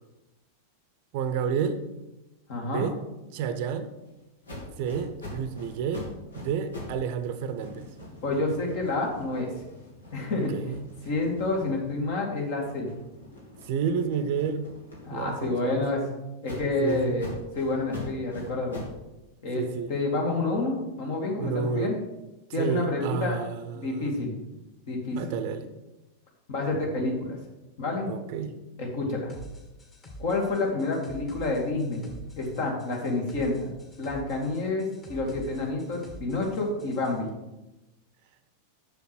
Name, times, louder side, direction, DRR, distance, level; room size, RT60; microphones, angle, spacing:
voice 1, 1.1-1.8 2.6-3.0 3.3-3.9 4.8-6.1 6.3-7.9 10.5-10.8 13.7-14.7 15.1-15.8 16.8-17.2 19.6-19.9 21.4-21.9 22.6-24.2 25.1-25.7 28.0-28.6, right 7 dB, 45° right, 10 dB, 0.7 m, -30 dB
voice 2, 2.5-2.9 8.2-9.5 10.1-10.5 11.0-12.9 15.0-16.0 16.4-18.8 19.4-19.6 19.9-22.0 22.5-23.4 23.7-24.3 24.9-25.4 26.5-27.4 27.8-28.1 28.8-29.3 30.2-32.1 32.4-33.5 34.0-37.3, left 2 dB, 50° left, 0 dB, 2.3 m, -28 dB
sound 1, 4.4-7.0 7.3-12.1 12.5-15.9 16.4-19.0, left 1 dB, 75° left, 2.2 m, -44 dB
sound 2, 29.3-37.2, right 1 dB, 25° left, 2.1 m, -45 dB
6.9 x 6.7 x 6.1 m, 1.0 s
figure-of-eight pair, 90°, 0 cm